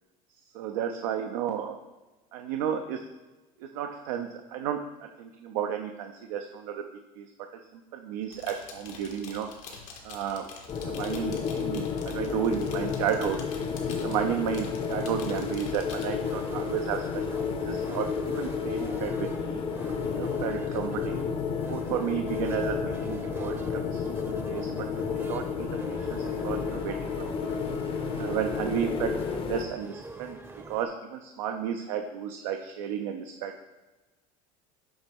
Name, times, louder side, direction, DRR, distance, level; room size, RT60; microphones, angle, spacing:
voice 1, 0.5-1.8 2.3-3.0 3.6-4.8 5.2-6.8 7.2-7.3 7.7-9.5 10.0-10.5 10.9-13.4 13.9-19.6 20.2-21.2 21.7-24.0 24.5-24.7 25.3-27.1 27.4-27.6 28.2-30.4 30.7-33.5, right 9 dB, 85° right, 5 dB, 0.5 m, -32 dB
sound 1, 8.2-16.1, left 5 dB, 90° left, 1.3 m, -46 dB
sound 2, 10.7-29.7, left 6 dB, 30° left, 0.6 m, -31 dB
sound 3, 16.2-30.9, right 3 dB, 15° right, 0.6 m, -46 dB
7.1 x 3.0 x 5.2 m, 1.1 s
supercardioid pair, 115°, 17 cm